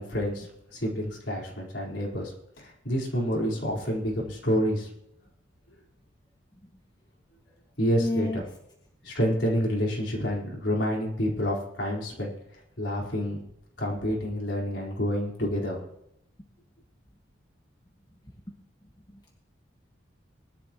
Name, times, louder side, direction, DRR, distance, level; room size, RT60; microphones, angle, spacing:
voice 1, 0.0-4.9 7.8-8.4 9.0-12.3 12.8-13.4 13.8-15.8, equal, 65° left, -3 dB, 4.4 m, -28 dB
voice 2, 8.0-8.4 16.4-16.5 18.5-18.6 19.1-19.3, left 1 dB, 20° left, -1 dB, 1.7 m, -31 dB
20.0 x 12.0 x 3.1 m, 0.76 s
head